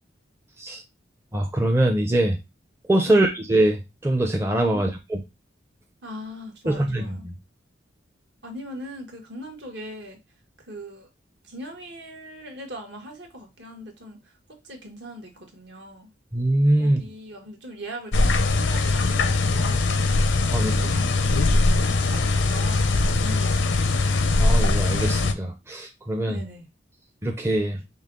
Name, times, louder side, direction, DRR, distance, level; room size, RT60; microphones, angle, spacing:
voice 1, 1.3-2.4 2.9-5.2 6.7-7.3 16.3-17.0 20.5-21.0 24.4-26.4 27.2-27.8, right 1 dB, 15° right, 2 dB, 0.6 m, -23 dB
voice 2, 6.0-7.3 8.4-10.2 10.7-11.1 11.4-14.2 14.5-16.1 16.8-19.9 20.5-21.1 21.4-23.8 26.3-26.7, equal, 65° right, 1 dB, 1.4 m, -40 dB
sound 1, 18.1-25.3, left 2 dB, 75° left, 0.6 m, -21 dB
5.5 x 2.3 x 3.7 m, 0.22 s
head